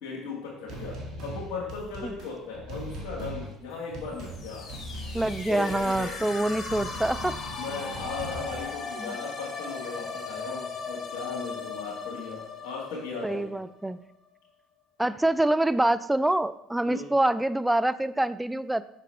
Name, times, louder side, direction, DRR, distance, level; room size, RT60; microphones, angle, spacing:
voice 1, 0.0-4.7 5.5-6.6 6.9-7.1 7.6-13.5 16.8-17.1, left 4 dB, 70° left, -6 dB, 1.8 m, -37 dB
sound 1, 0.7-8.6, right 1 dB, 60° right, 1.9 m, -40 dB
sound 2, 4.2-13.9, left 4 dB, 45° left, 1.1 m, -38 dB
voice 2, 5.1-7.4 9.0-9.1 13.2-14.0 15.0-18.8, right 1 dB, 10° right, 15 dB, 0.3 m, -26 dB
6.8 x 6.0 x 3.3 m, 0.82 s
hypercardioid pair, 75°, 0 cm